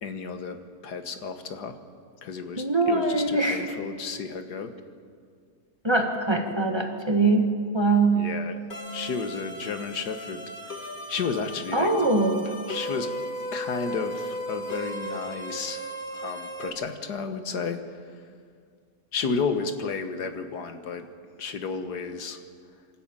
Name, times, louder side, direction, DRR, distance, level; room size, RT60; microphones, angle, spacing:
voice 1, 0.0-1.8 2.2-4.7 8.1-8.6 8.9-12.1 12.7-13.1 13.5-15.9 16.1-18.2 19.1-21.1 21.4-22.4, left 5 dB, 80° left, 8 dB, 1.8 m, -32 dB
voice 2, 2.6-3.6 5.8-8.3 11.7-12.5, right 3 dB, 15° right, 3 dB, 1.7 m, -23 dB
sound 1, 8.7-16.7, equal, 30° left, 1.7 m, -36 dB
25.5 x 13.0 x 8.9 m, 2.1 s
omnidirectional pair, 1.7 m